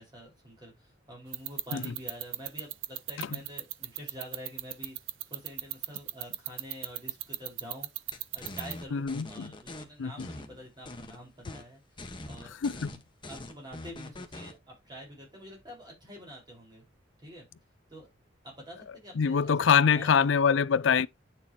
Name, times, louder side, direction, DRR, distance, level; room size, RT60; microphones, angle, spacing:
voice 1, 0.0-5.0 5.3-7.9 8.3-12.5 13.3-16.8 17.2-17.5 17.9-18.1 18.4-20.4, equal, 25° right, 4.9 m, -47 dB
sound 1, 1.3-8.8, right 16 dB, 80° right, 0.6 m, -34 dB
sound 2, 8.1-9.8 10.2-11.2 11.4-11.7 12.0-14.5, left 2 dB, 25° left, 1.3 m, -43 dB
voice 2, 8.9-9.5 10.0-10.3 12.6-12.9 19.2-21.1, left 6 dB, 75° left, 0.4 m, -24 dB
9.5 x 6.7 x 2.9 m
head